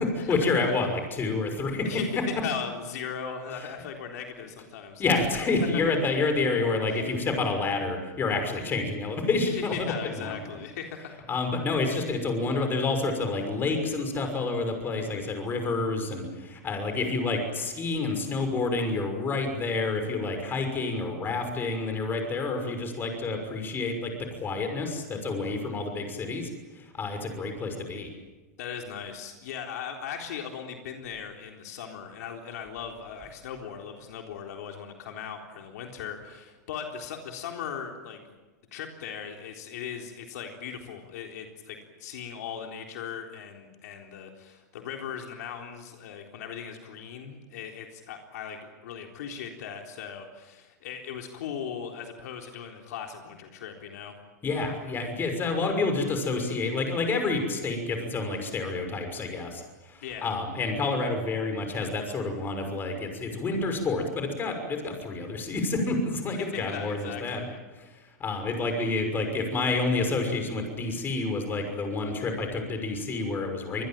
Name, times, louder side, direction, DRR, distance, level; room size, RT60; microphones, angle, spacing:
voice 1, 0.0-1.9 2.2-2.3 3.5-3.7 5.0-10.3 11.0-26.5 26.8-28.1 54.4-67.5 67.8-67.9 68.2-73.9, left 3 dB, 20° left, 5 dB, 6.1 m, -29 dB
voice 2, 1.8-5.9 6.9-7.0 9.5-11.4 28.6-38.4 38.7-54.1 60.0-60.3 66.3-67.6, left 7 dB, 70° left, 3 dB, 3.8 m, -38 dB
25.5 x 21.0 x 9.1 m, 1.2 s
supercardioid pair, 135°, 9 cm